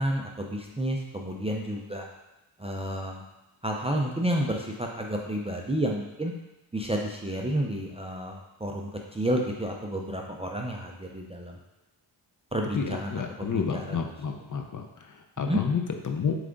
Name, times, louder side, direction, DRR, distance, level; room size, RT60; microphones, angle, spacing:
voice 1, 0.0-2.1 2.6-3.2 3.6-6.3 6.7-11.6 12.5-14.0 15.4-15.6, right 1 dB, 15° right, 0 dB, 0.4 m, -30 dB
voice 2, 12.7-14.9 15.4-16.3, left 6 dB, 40° left, 4 dB, 0.6 m, -30 dB
7.2 x 3.4 x 3.8 m, 0.98 s
wide cardioid pair, 145°, 47 cm